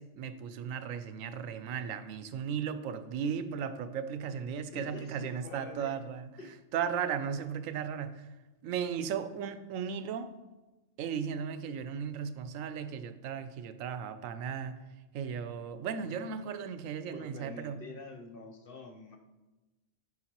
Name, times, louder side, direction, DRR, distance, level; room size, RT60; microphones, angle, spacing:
voice 1, 0.0-6.3 6.7-8.3 8.6-10.3 11.0-14.8 15.1-17.8, right 7 dB, 80° right, 11 dB, 1.0 m, -36 dB
voice 2, 4.7-5.9 6.4-6.6 17.1-19.2, left 3 dB, 60° left, 2 dB, 0.7 m, -46 dB
9.6 x 4.8 x 2.9 m, 1.1 s
omnidirectional pair, 1.4 m